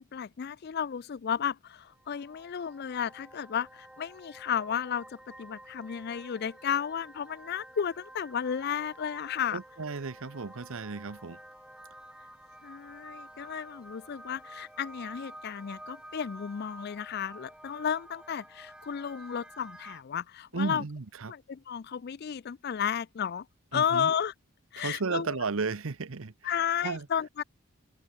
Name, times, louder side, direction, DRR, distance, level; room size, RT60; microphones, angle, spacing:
voice 1, 0.0-9.6 12.6-20.8 21.3-23.5 23.7-24.3 24.7-25.3 26.4-27.4, left 8 dB, 45° left, 0.4 m, -33 dB
sound 1, 1.9-20.0, right 1 dB, 5° right, 0.9 m, -50 dB
sound 2, 5.6-18.3, left 5 dB, 65° left, 7.6 m, -73 dB
voice 2, 9.5-11.4 20.5-21.3 23.7-24.1 24.8-26.6 26.8-27.1, right 4 dB, 70° right, 0.8 m, -34 dB
head